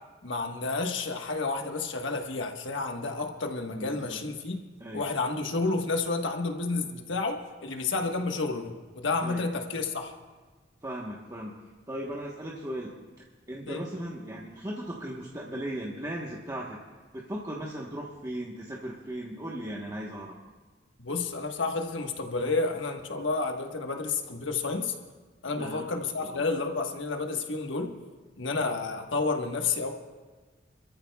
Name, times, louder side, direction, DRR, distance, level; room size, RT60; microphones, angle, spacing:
voice 1, 0.2-4.6 4.9-10.1 13.7-13.8 21.0-24.9 25.4-27.9 28.4-29.9, left 3 dB, 80° left, 3 dB, 1.3 m, -30 dB
voice 2, 3.7-4.2 4.8-5.0 9.2-9.5 10.8-11.5 11.9-12.9 13.5-16.8 17.1-20.4 25.6-25.9 26.2-26.5, right 1 dB, 20° right, -4 dB, 1.1 m, -37 dB
30.0 x 13.5 x 2.3 m, 1.4 s
head